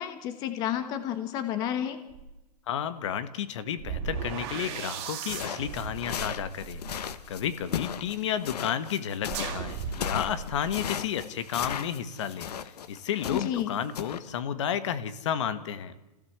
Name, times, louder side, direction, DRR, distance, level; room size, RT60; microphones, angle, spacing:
voice 1, 0.0-2.0 13.3-13.7, left 10 dB, 20° left, 11 dB, 1.1 m, -31 dB
sound 1, 2.1-2.3 3.8-7.9 9.3-10.7, right 6 dB, 25° right, 3.6 m, -37 dB
voice 2, 2.7-6.8 7.3-12.5 12.9-15.9, left 9 dB, 45° left, 13 dB, 1.5 m, -32 dB
sound 2, 5.3-13.6 14.0-14.2, left 8 dB, 70° left, 1.4 m, -36 dB
27.0 x 16.5 x 8.1 m, 1.0 s
hypercardioid pair, 175°, 21 cm